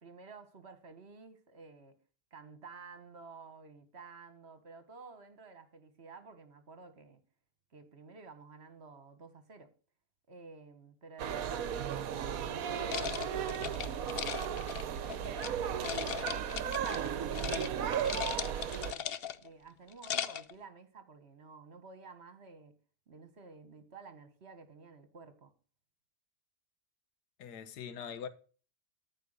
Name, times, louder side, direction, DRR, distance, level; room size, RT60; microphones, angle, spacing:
voice 1, 0.0-1.9 2.3-7.2 7.7-9.7 10.3-14.0 14.5-14.7 15.1-16.0 16.3-19.1 19.4-22.7 23.1-25.5, right 4 dB, 45° right, 1.6 m, -52 dB
sound 1, 11.2-18.9, right 8 dB, 65° right, 1.2 m, -35 dB
sound 2, 12.9-15.5 15.8-17.1 17.3-17.7 17.9-19.5 19.9-20.5, left 9 dB, 55° left, 0.7 m, -38 dB
voice 2, 27.4-28.3, left 7 dB, 80° left, 1.5 m, -42 dB
14.0 x 5.0 x 6.6 m
omnidirectional pair, 1.7 m